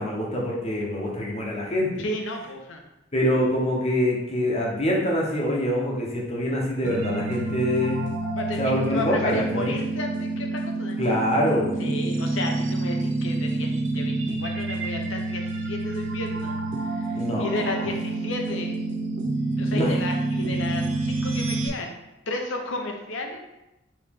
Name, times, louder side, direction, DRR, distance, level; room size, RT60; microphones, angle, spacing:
voice 1, 0.0-2.0 3.1-8.1 8.6-9.7 11.0-11.8 17.1-17.7 19.7-20.0, equal, 30° left, -3 dB, 0.9 m, -25 dB
voice 2, 2.0-2.8 8.4-11.0 11.8-18.7 19.6-22.0 22.3-23.4, left 2 dB, 80° left, 3 dB, 0.8 m, -33 dB
sound 1, 6.8-21.7, right 2 dB, 65° right, 0.6 m, -28 dB
4.8 x 3.1 x 3.6 m, 0.94 s
head